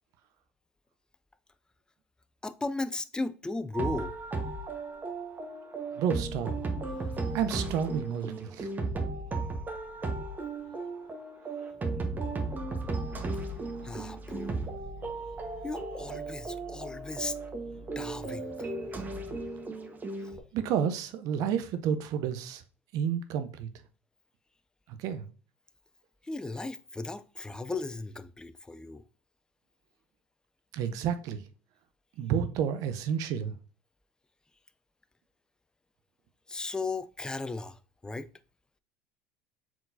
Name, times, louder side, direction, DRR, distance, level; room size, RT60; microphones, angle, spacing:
voice 1, 2.4-4.1 13.8-14.7 15.6-17.4 18.0-18.7 26.2-29.0 36.5-38.3, left 3 dB, 10° left, 0.4 m, -36 dB
sound 1, 3.7-20.4, right 3 dB, 25° right, 1.0 m, -35 dB
voice 2, 6.0-6.5 7.3-8.7 20.5-22.6 22.9-23.7 25.0-25.3 30.7-31.4 32.2-33.5, right 8 dB, 60° right, 0.6 m, -30 dB
sound 2, 12.6-18.3, right 1 dB, 85° left, 1.0 m, -48 dB
4.5 x 3.8 x 2.5 m
hypercardioid pair, 75°, 7 cm